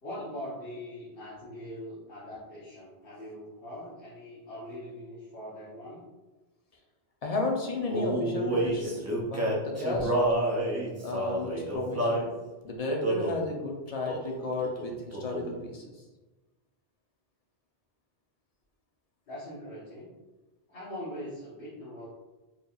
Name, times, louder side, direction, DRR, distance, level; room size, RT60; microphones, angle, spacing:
voice 1, 0.0-6.0 19.3-20.1 20.7-22.1, left 1 dB, 65° left, -9 dB, 1.3 m, -42 dB
voice 2, 7.2-9.0 9.2-10.1 11.0-12.3 12.6-16.0, left 2 dB, 40° left, 1 dB, 0.7 m, -33 dB
Male singing, 7.9-12.3 13.0-13.4 14.1-14.3 14.6-15.6, right 1 dB, 20° right, 0.5 m, -29 dB
4.7 x 3.2 x 2.4 m, 1.2 s
omnidirectional pair, 1.1 m